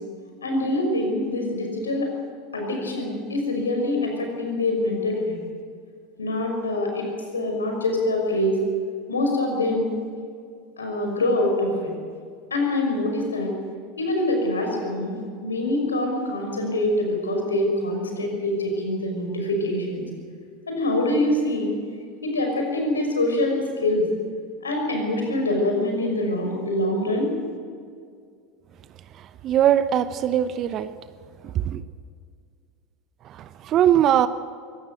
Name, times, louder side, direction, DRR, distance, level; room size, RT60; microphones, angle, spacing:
voice 1, 0.4-2.1 2.5-5.4 6.2-8.6 9.1-9.9 10.8-11.9 12.5-13.5 14.0-20.0 20.7-21.7 22.2-24.1 24.6-27.3, left 1 dB, 80° left, 2 dB, 5.8 m, -25 dB
voice 2, 29.4-30.9 31.5-31.8 33.6-34.3, right 10 dB, 40° right, 13 dB, 0.8 m, -20 dB
23.0 x 18.5 x 7.9 m, 2.2 s
figure-of-eight pair, 80°, 0 cm